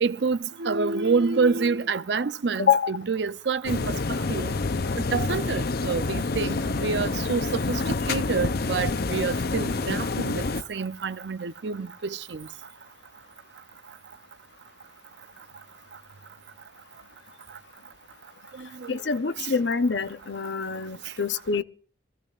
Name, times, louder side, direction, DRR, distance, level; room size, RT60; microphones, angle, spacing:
voice 1, 0.0-4.5 5.1-12.5 18.6-19.0 19.4-19.5, right 4 dB, 75° right, 0.6 m, -28 dB
voice 2, 2.6-2.9 18.9-21.6, left 6 dB, 90° left, 0.8 m, -25 dB
sound 1, 3.6-10.6, left 3 dB, 60° left, 0.7 m, -27 dB
25.0 x 15.5 x 2.5 m
head